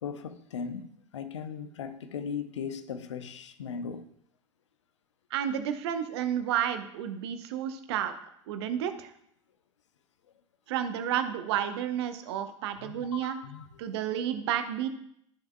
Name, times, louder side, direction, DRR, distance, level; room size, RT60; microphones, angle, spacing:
voice 1, 0.0-4.1 12.8-13.8, left 6 dB, 70° left, 0.7 m, -38 dB
voice 2, 5.3-8.1 8.5-9.1 10.7-13.4 13.8-14.9, right 10 dB, 55° right, 0.8 m, -31 dB
12.5 x 7.0 x 2.2 m
figure-of-eight pair, 75°, 16 cm